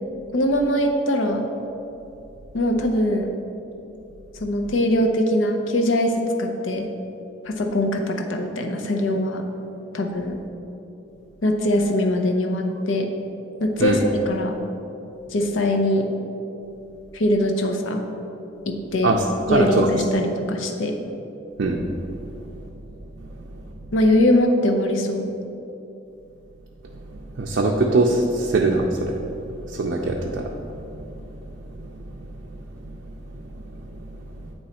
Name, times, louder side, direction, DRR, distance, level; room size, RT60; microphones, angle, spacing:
voice 1, 0.3-1.4 2.5-3.3 4.4-6.9 7.4-9.4 9.9-10.4 11.4-13.1 13.6-14.6 15.3-16.1 17.1-18.0 18.7-19.1 19.5-21.0 23.9-25.3, left 1 dB, 85° left, 4 dB, 0.6 m, -22 dB
voice 2, 19.5-19.9 21.6-21.8 27.4-29.2 29.7-30.5 32.8-32.9, right 2 dB, 65° right, 0 dB, 0.4 m, -21 dB
8.7 x 3.1 x 4.2 m, 2.8 s
head